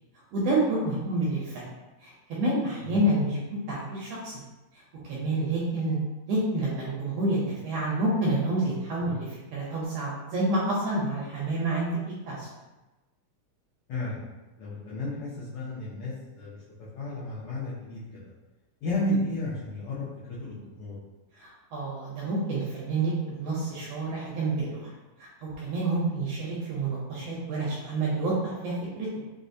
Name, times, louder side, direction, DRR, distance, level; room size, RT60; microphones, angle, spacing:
voice 1, 0.3-1.7 2.0-4.3 4.7-6.0 6.3-12.0 12.3-12.5 21.4-24.9 25.4-29.1, right 2 dB, 80° right, -5 dB, 1.5 m, -28 dB
voice 2, 13.9-14.2 14.6-16.6 16.9-18.2 18.8-21.0, left 1 dB, 90° left, -8 dB, 1.2 m, -33 dB
4.6 x 2.1 x 2.6 m, 1.1 s
omnidirectional pair, 3.3 m